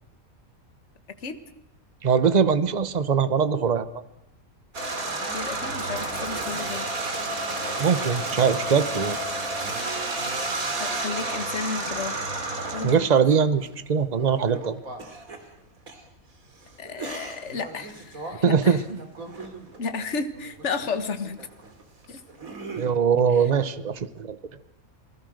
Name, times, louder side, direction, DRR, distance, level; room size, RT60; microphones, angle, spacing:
voice 1, 1.1-1.4 5.3-6.9 10.8-12.2 12.7-13.1 16.8-18.8 19.8-21.5 22.1-22.2 23.3-23.5, left 4 dB, 55° left, 10 dB, 1.8 m, -33 dB
voice 2, 2.0-3.9 7.8-9.2 12.8-14.8 18.4-19.0 22.8-24.4, right 6 dB, 35° right, 13 dB, 1.0 m, -22 dB
sound 1, 4.7-13.7 14.2-15.4 15.9-16.0 16.8-19.8 20.3-21.0 21.2-22.9, right 2 dB, 75° right, 3.2 m, -32 dB
28.5 x 20.0 x 6.5 m, 0.80 s
omnidirectional pair, 1.5 m